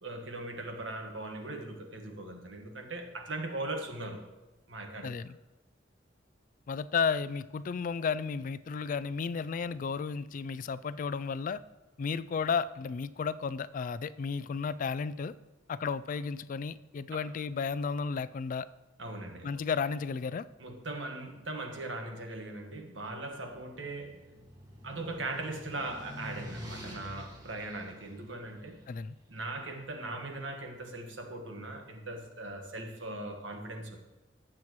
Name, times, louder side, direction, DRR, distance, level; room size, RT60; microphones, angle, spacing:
voice 1, 0.0-4.3 4.7-5.1 19.0-19.6 20.6-24.2 24.8-28.8 29.3-34.0, right 2 dB, 85° right, 3 dB, 1.6 m, -39 dB
voice 2, 5.0-5.4 6.7-11.6 12.0-15.3 15.7-18.7 19.4-20.4 28.9-29.2, left 5 dB, 45° left, 16 dB, 0.3 m, -33 dB
sound 1, 23.6-29.5, equal, 20° right, 1.8 m, -47 dB
19.5 x 7.5 x 3.1 m, 1.1 s
head